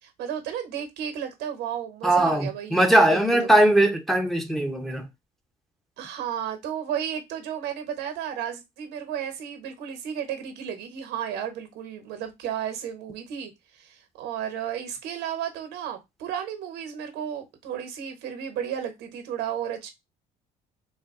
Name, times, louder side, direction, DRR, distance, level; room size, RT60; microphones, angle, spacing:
voice 1, 0.0-3.2 6.0-13.5 13.8-19.9, right 9 dB, 90° right, 1.1 m, -33 dB
voice 2, 2.0-5.1, right 1 dB, ahead, 0.8 m, -20 dB
4.0 x 2.3 x 3.7 m
cardioid pair, 110°, 17 cm